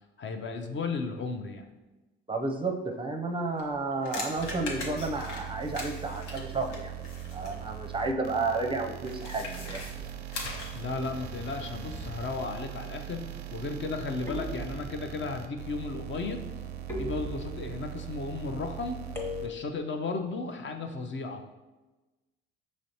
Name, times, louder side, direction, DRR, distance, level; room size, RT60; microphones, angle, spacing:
voice 1, 0.2-1.6 10.7-13.2 13.5-16.5 17.0-19.0 19.4-21.5, left 3 dB, 40° left, 5 dB, 0.5 m, -34 dB
voice 2, 2.3-6.9 7.3-10.1, right 3 dB, 15° right, 4 dB, 0.5 m, -32 dB
sound 1, 3.6-7.6 9.0-10.9, left 3 dB, 75° left, 0.9 m, -40 dB
sound 2, 4.4-19.5, right 11 dB, 85° right, 0.5 m, -41 dB
sound 3, 11.9-12.4 14.3-15.2 16.9-17.8 19.1-19.9, left 2 dB, 5° left, 0.9 m, -38 dB
5.0 x 3.1 x 2.8 m, 1.1 s
hypercardioid pair, 55°, 30 cm